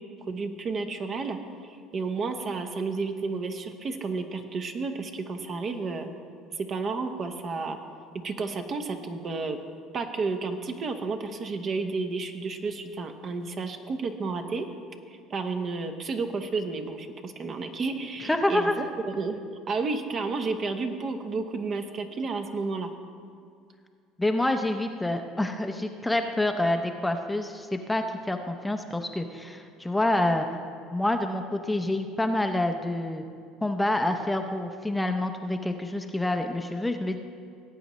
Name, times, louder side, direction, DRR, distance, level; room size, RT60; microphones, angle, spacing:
voice 1, 0.3-6.1 6.5-7.8 8.2-9.6 9.9-14.7 15.3-18.8 19.2-19.4 19.7-22.9, right 4 dB, 40° right, 6 dB, 1.0 m, -31 dB
voice 2, 18.2-18.8 24.2-30.5 30.9-33.2 33.6-37.2, left 1 dB, 5° left, 5 dB, 0.6 m, -27 dB
18.0 x 8.4 x 3.1 m, 2.3 s
supercardioid pair, 105°, 0 cm